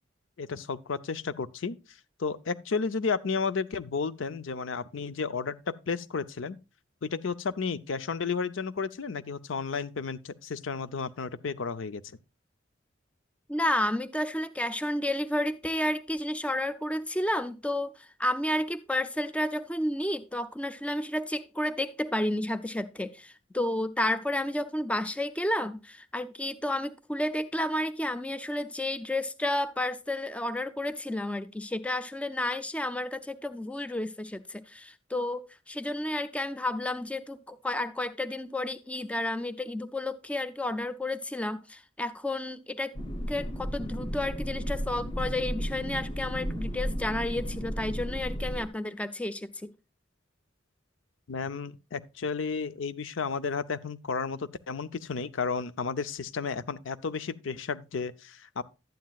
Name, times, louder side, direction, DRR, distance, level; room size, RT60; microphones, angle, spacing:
voice 1, 0.4-1.8 2.2-6.6 7.0-12.0 51.3-58.6, left 5 dB, 80° left, 0.5 m, -32 dB
voice 2, 13.5-42.9 43.3-49.7, left 1 dB, 5° left, 0.4 m, -31 dB
sound 1, 42.9-48.6, equal, 25° left, 0.9 m, -34 dB
12.0 x 9.3 x 2.3 m
head